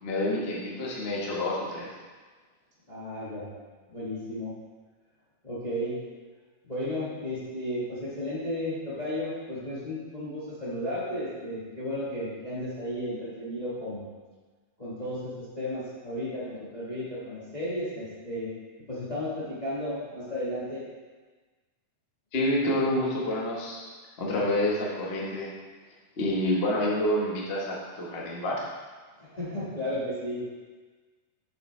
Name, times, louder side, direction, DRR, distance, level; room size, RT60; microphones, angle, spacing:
voice 1, 0.0-1.9 22.3-23.8 24.2-25.5 26.2-28.6, left 1 dB, 65° left, -4 dB, 0.6 m, -28 dB
voice 2, 2.9-3.5 3.9-4.5 5.4-6.0 6.6-14.1 14.8-18.5 18.9-20.9 29.2-30.5, left 1 dB, 25° left, -9 dB, 0.9 m, -34 dB
7.9 x 6.8 x 3.3 m, 1.4 s
omnidirectional pair, 3.5 m